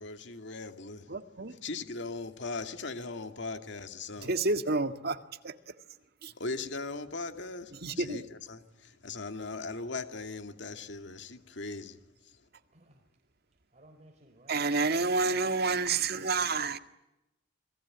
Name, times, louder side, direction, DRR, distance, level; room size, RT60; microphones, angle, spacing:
voice 1, 0.0-1.1 1.6-4.3 6.4-12.0 12.2-12.4, left 3 dB, 65° left, 2.4 m, -39 dB
voice 2, 1.1-1.5 4.2-5.2 7.8-8.2 14.5-16.8, right 3 dB, 55° right, 1.9 m, -29 dB
voice 3, 12.5-13.0 13.7-14.9, right 1 dB, 40° right, 4.2 m, -58 dB
28.5 x 21.0 x 9.8 m
head